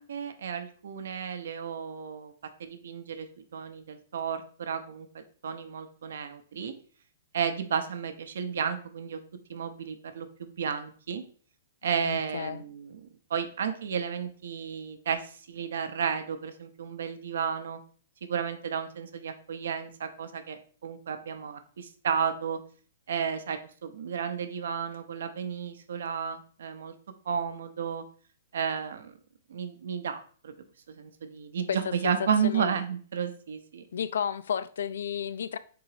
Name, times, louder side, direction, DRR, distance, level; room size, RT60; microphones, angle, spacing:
voice 1, 0.0-2.3 2.6-6.7 7.3-9.2 9.5-11.2 11.8-17.8 18.2-22.6 23.1-26.9 27.3-28.0 28.5-29.1 29.5-30.5 30.9-33.8, right 7 dB, 65° right, 8 dB, 0.7 m, -32 dB
voice 2, 12.0-12.6 31.7-31.8 32.0-32.1 32.4-32.7 33.9-35.6, left 8 dB, 75° left, 14 dB, 0.3 m, -32 dB
3.8 x 2.9 x 4.8 m, 0.43 s
hypercardioid pair, 175°, 0 cm